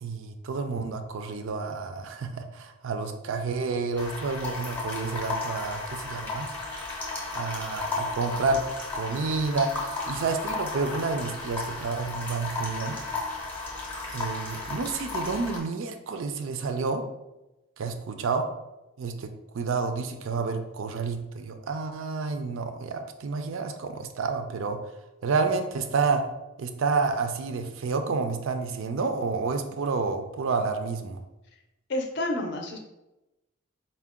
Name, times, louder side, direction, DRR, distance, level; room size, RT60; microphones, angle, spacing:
voice 1, 0.0-6.5 6.9-7.0 7.3-8.7 8.9-13.0 14.1-17.0 17.8-18.5 19.0-24.8 25.2-26.3 26.6-31.2, right 4 dB, 65° right, 7 dB, 0.4 m, -29 dB
sound 1, 4.0-15.6, left 3 dB, 10° left, 0.7 m, -34 dB
voice 2, 31.9-32.8, left 1 dB, 55° left, 2 dB, 0.5 m, -29 dB
4.4 x 2.2 x 3.5 m, 0.98 s
head